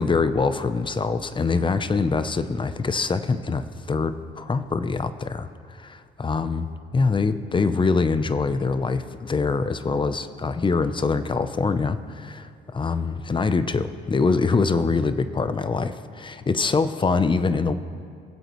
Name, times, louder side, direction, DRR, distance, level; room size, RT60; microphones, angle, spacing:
voice 1, 0.0-6.7 6.9-17.7, left 4 dB, 25° left, 12 dB, 0.6 m, -24 dB
23.0 x 8.0 x 3.1 m, 2.3 s
cardioid pair, 90°, 20 cm